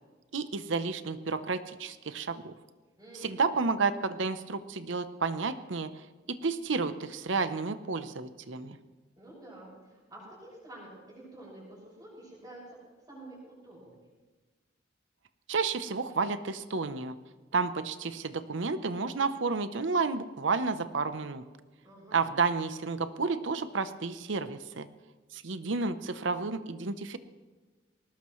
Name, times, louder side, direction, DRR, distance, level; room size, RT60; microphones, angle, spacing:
voice 1, 0.3-2.5 3.2-5.9 6.3-8.8 15.5-17.2 17.5-21.4 22.1-24.9 25.3-27.2, right 4 dB, 75° right, 12 dB, 0.8 m, -31 dB
voice 2, 3.0-3.5 9.2-12.8 13.1-14.1 21.8-22.3, right 1 dB, 15° right, -11 dB, 6.0 m, -49 dB
20.0 x 18.5 x 3.2 m, 1.3 s
head